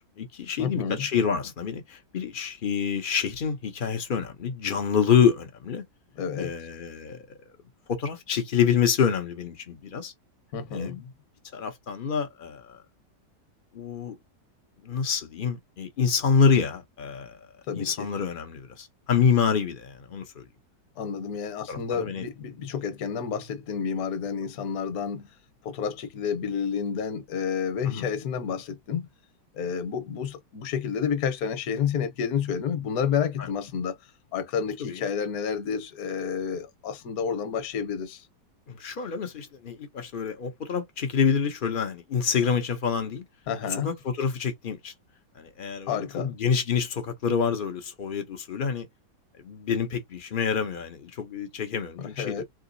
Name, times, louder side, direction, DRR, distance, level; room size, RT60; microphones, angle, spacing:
voice 1, 0.0-5.8 6.4-7.2 7.9-10.1 10.7-11.0 11.5-12.8 13.7-14.2 14.8-17.4 17.7-20.4 21.7-22.2 27.8-28.1 33.4-33.5 34.8-35.1 38.7-43.2 43.8-44.9 45.3-48.9 49.4-52.4, left 6 dB, 80° left, 0.4 m, -27 dB
voice 2, 0.6-1.0 6.2-6.5 10.5-11.0 17.7-18.1 21.0-25.3 25.6-29.1 29.5-34.0 34.3-38.2 43.5-43.9 45.9-46.3 52.2-52.4, left 7 dB, 60° left, 1.1 m, -30 dB
3.7 x 2.7 x 2.6 m
omnidirectional pair, 1.9 m